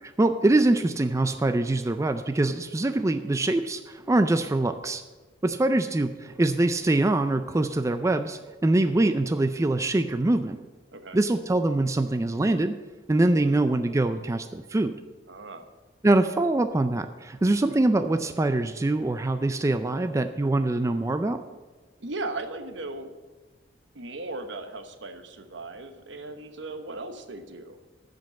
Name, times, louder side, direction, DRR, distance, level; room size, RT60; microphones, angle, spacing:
voice 1, 0.0-5.0 5.4-10.6 11.1-12.8 13.1-15.0 16.0-21.4, right 2 dB, 15° right, 9 dB, 0.4 m, -24 dB
voice 2, 15.3-15.7 22.0-23.1 23.9-27.8, right 2 dB, 75° right, 7 dB, 1.0 m, -37 dB
13.5 x 5.3 x 7.2 m, 1.3 s
head